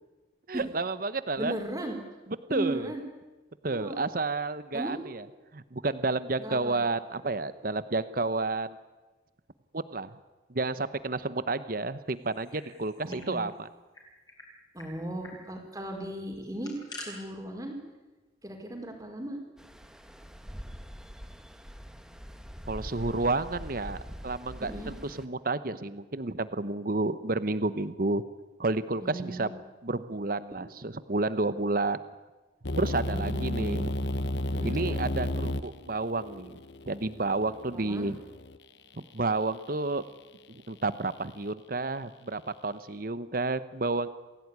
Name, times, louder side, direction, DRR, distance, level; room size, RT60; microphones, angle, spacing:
voice 1, 0.5-1.6 2.5-2.9 3.6-5.2 5.5-8.8 9.7-10.1 10.5-13.7 22.7-24.0 24.2-28.2 28.6-29.5 29.8-32.0 32.8-33.9 34.6-36.6 36.9-38.2 39.0-40.0 40.5-44.1, right 3 dB, 50° right, 14 dB, 1.0 m, -30 dB
voice 2, 1.4-2.0 2.5-3.0 3.7-4.0 4.7-5.0 6.4-6.8 13.0-13.4 14.7-17.7 18.4-19.4 24.6-24.9 29.0-29.6 33.0-33.5 34.5-35.1 37.7-38.1, right 1 dB, 20° right, 3 dB, 4.7 m, -37 dB
sound 1, 12.2-13.3 13.6-13.7 13.9-14.5 14.8-14.9 15.2-15.4 16.4-17.1, left 2 dB, 20° left, 6.5 m, -46 dB
Stream, 19.6-25.3, equal, 5° right, 1.4 m, -43 dB
sound 2, 32.6-38.6, left 1 dB, 70° left, 1.1 m, -33 dB
27.5 x 16.5 x 9.7 m, 1.2 s
head